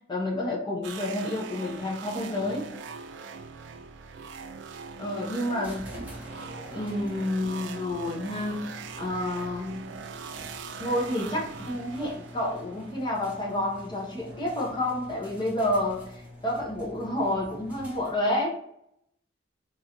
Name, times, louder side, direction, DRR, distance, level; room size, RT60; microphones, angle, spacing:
voice 1, 0.1-2.7 5.0-5.9 6.7-9.8 10.8-18.5, left 1 dB, 25° left, -2 dB, 0.8 m, -29 dB
sound 1, 0.8-13.6, right 5 dB, 85° right, 0.3 m, -42 dB
sound 2, 5.6-18.4, equal, 10° right, 1.1 m, -46 dB
3.1 x 2.6 x 2.9 m, 0.74 s
head